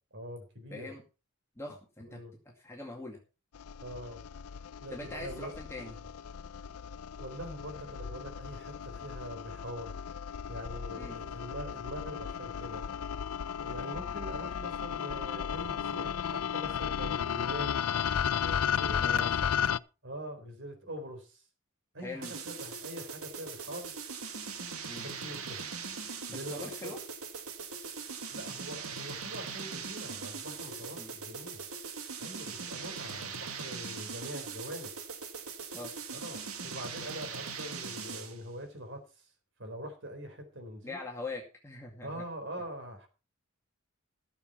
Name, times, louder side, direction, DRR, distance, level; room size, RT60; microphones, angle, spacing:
voice 1, 0.1-0.9 2.1-2.3 3.8-4.2 4.8-5.9 7.2-9.9 10.5-12.8 13.6-17.8 18.4-19.3 20.0-21.4 21.9-23.9 25.0-25.7 26.3-27.0 28.3-31.6 32.2-34.9 36.1-39.3 39.6-41.0 42.0-43.1, equal, 60° right, 5 dB, 4.0 m, -43 dB
voice 2, 0.7-1.0 1.6-2.2 2.5-3.2 4.9-5.9 10.9-11.2 18.8-19.4 22.0-22.3 24.9-25.1 26.3-27.0 31.0-31.1 35.7-35.9 40.8-42.2, left 2 dB, 10° left, -2 dB, 2.2 m, -42 dB
sound 1, 3.5-19.8, left 8 dB, 85° left, 0.5 m, -34 dB
sound 2, 22.2-38.4, right 5 dB, 80° right, 1.9 m, -41 dB
14.5 x 7.2 x 5.5 m, 0.34 s
head